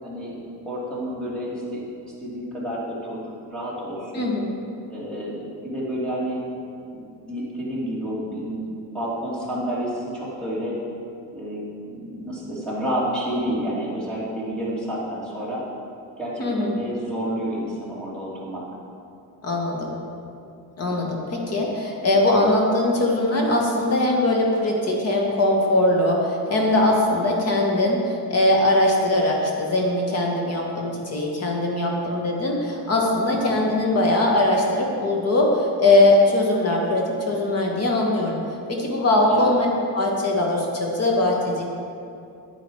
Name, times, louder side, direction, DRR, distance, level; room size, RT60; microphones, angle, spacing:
voice 1, 0.0-0.3 0.6-1.8 2.2-3.2 3.5-4.3 4.9-6.4 6.9-8.6 8.9-10.7 11.3-11.6 11.9-15.6 16.2-18.6 26.5-26.6 33.3-33.6 39.3-39.5, equal, ahead, -7 dB, 2.6 m, -29 dB
voice 2, 4.1-4.5 16.4-16.7 19.4-20.0 20.8-38.4 38.7-39.7 39.9-41.6, left 1 dB, 40° left, -1 dB, 1.8 m, -21 dB
9.5 x 8.9 x 4.8 m, 2.6 s
cardioid pair, 155°, 39 cm